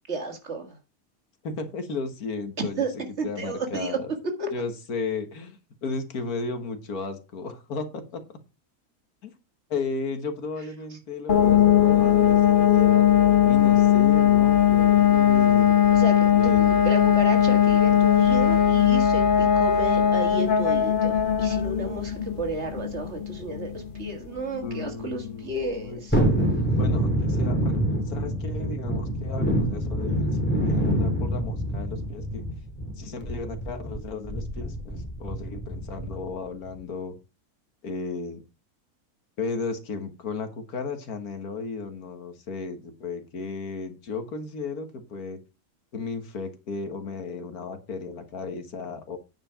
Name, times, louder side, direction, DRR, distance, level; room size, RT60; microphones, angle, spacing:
voice 1, 0.1-0.8 2.8-2.9 3.2-4.0 4.4-4.5 15.9-26.2, right 2 dB, 50° right, 5 dB, 2.1 m, -32 dB
voice 2, 1.4-4.1 4.5-8.2 9.2-9.3 9.7-13.0 13.5-15.7 16.3-16.9 24.6-26.5 26.8-30.3 30.6-32.4 33.0-37.2 37.8-38.4 39.4-45.4 45.9-49.2, left 4 dB, 80° left, 8 dB, 1.9 m, -34 dB
sound 1, 11.3-25.9, left 10 dB, 40° left, 1.1 m, -20 dB
Thunderstorm, 26.1-36.3 36.7-36.8, right 1 dB, 5° left, 2.4 m, -26 dB
9.4 x 5.0 x 5.6 m, 0.30 s
omnidirectional pair, 1.5 m